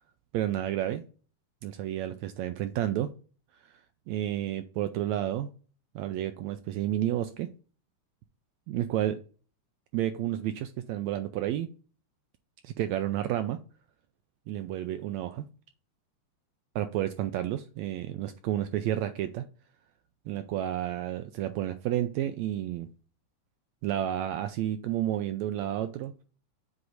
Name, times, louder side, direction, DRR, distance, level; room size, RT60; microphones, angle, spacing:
voice 1, 0.3-1.0 1.6-3.1 4.1-5.5 5.9-7.5 8.7-9.2 9.9-11.7 12.6-13.6 14.5-15.5 16.7-19.4 20.3-22.9 23.8-26.1, right 12 dB, 80° right, 1.6 m, -31 dB
7.8 x 2.7 x 4.8 m
omnidirectional pair, 3.6 m